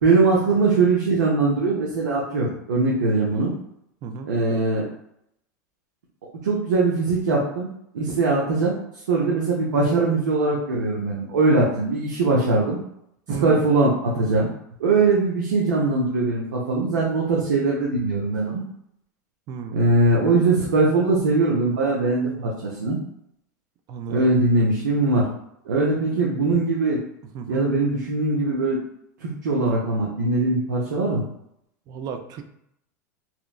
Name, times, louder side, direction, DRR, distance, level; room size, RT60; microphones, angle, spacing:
voice 1, 0.0-3.5 4.3-4.8 6.4-7.7 7.9-8.8 9.1-12.8 13.4-14.5 14.8-18.6 19.7-23.0 24.1-25.2 25.6-27.0 27.5-28.8 29.2-31.2, right 3 dB, 90° right, -4 dB, 0.6 m, -21 dB
voice 2, 4.0-4.3 13.3-13.6 19.5-19.8 23.9-24.3 27.3-27.7 31.9-32.4, right 6 dB, 45° right, 7 dB, 0.4 m, -33 dB
2.9 x 2.1 x 2.3 m, 0.77 s
hypercardioid pair, 110°, 10 cm